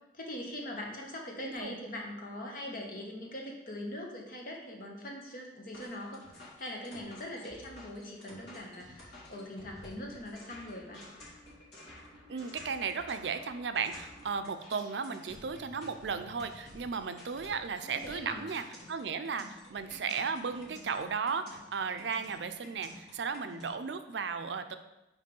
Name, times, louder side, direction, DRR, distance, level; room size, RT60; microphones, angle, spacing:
voice 1, 0.1-11.0 17.8-18.4, left 1 dB, 50° left, 0 dB, 1.3 m, -42 dB
voice 2, 1.4-1.8 12.3-24.8, right 5 dB, 85° right, 9 dB, 0.5 m, -35 dB
sound 1, 5.7-23.7, left 1 dB, 70° left, 2.3 m, -52 dB
5.3 x 4.7 x 5.3 m, 0.95 s
head